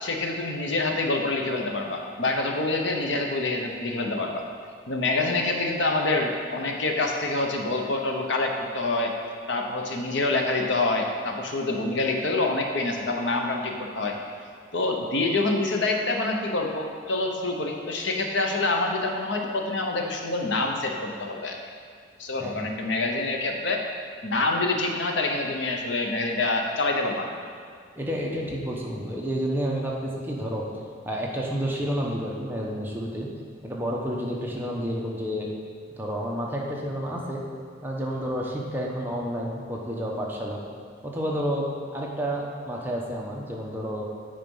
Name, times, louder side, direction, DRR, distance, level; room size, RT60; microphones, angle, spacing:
voice 1, 0.0-4.4 4.9-9.1 9.5-14.1 14.7-21.6 22.2-23.8 24.2-27.3, left 2 dB, 65° left, 2 dB, 0.9 m, -26 dB
voice 2, 27.9-30.6 31.1-33.3 33.6-35.5 36.0-37.4 37.8-40.6 41.0-44.0, equal, 10° right, -3 dB, 0.9 m, -30 dB
8.8 x 5.0 x 5.5 m, 2.1 s
head